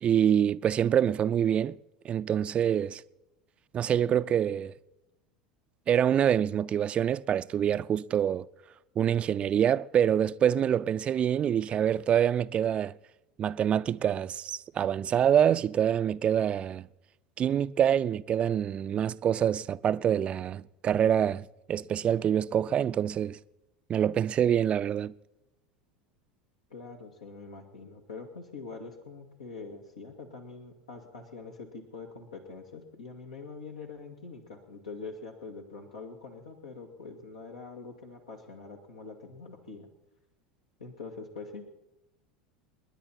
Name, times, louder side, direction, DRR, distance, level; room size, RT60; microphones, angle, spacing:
voice 1, 0.0-1.8 2.0-3.0 3.7-4.7 5.9-8.5 9.0-12.9 13.4-16.9 17.4-23.4 23.9-25.1, right 9 dB, 35° right, 0.5 m, -26 dB
voice 2, 26.7-39.9 40.8-41.6, left 4 dB, 75° left, 2.0 m, -44 dB
30.0 x 10.5 x 4.3 m
figure-of-eight pair, 75°, 4 cm